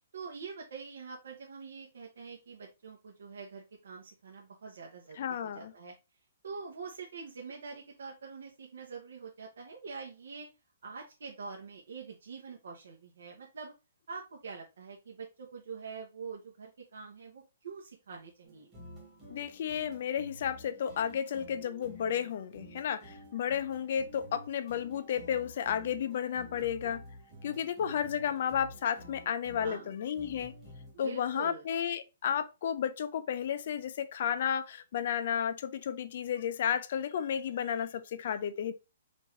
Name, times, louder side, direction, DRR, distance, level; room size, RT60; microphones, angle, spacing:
voice 1, 0.1-5.9 6.4-10.5 10.8-13.7 14.1-18.7 29.6-29.9 30.9-31.7, right 5 dB, 75° right, 0.9 m, -45 dB
voice 2, 5.2-5.7 19.3-27.0 27.4-30.5 31.0-38.7, left 8 dB, 45° left, 0.4 m, -32 dB
sound 1, 18.4-30.9, equal, 10° right, 1.3 m, -51 dB
5.3 x 2.6 x 3.1 m
hypercardioid pair, 175°, 0 cm